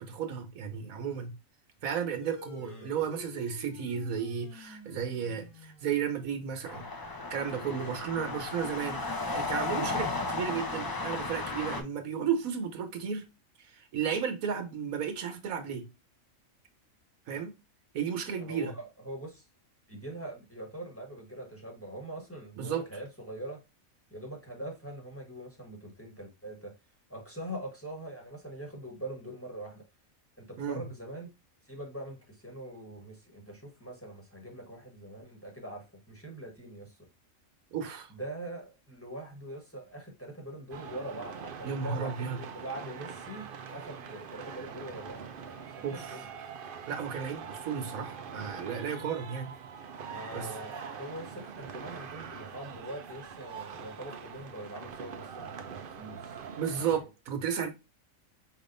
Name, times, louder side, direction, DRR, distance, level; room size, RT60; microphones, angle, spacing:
voice 1, 0.0-1.3 1.8-6.9 7.3-13.2 13.7-15.9 17.3-17.6 17.9-18.7 22.6-22.9 30.6-30.8 37.7-38.1 41.6-42.4 45.8-46.3 46.9-49.5 50.3-50.5 56.6-57.7, right 7 dB, 85° right, 1.3 m, -33 dB
sound 1, 2.2-7.1, left 4 dB, 80° left, 2.1 m, -51 dB
sound 2, 6.6-11.8, left 3 dB, 30° left, 0.4 m, -34 dB
voice 2, 18.4-19.4 19.9-23.6 24.1-26.7 27.1-29.8 30.4-31.3 31.6-37.0 38.1-46.3 50.0-56.9, right 1 dB, 10° left, 1.2 m, -43 dB
sound 3, 40.7-57.0, right 6 dB, 55° right, 0.6 m, -43 dB
5.0 x 3.5 x 2.5 m
omnidirectional pair, 1.4 m